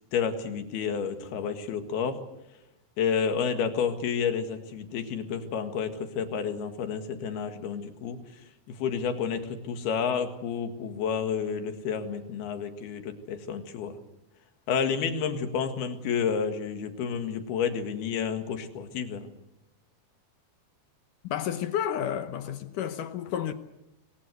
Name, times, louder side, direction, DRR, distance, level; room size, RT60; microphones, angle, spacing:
voice 1, 0.1-2.2 3.0-8.2 8.7-14.0 14.7-19.3, left 6 dB, 85° left, 3.8 m, -30 dB
voice 2, 21.3-23.5, left 9 dB, 70° left, 2.3 m, -31 dB
27.0 x 21.5 x 8.0 m
omnidirectional pair, 4.4 m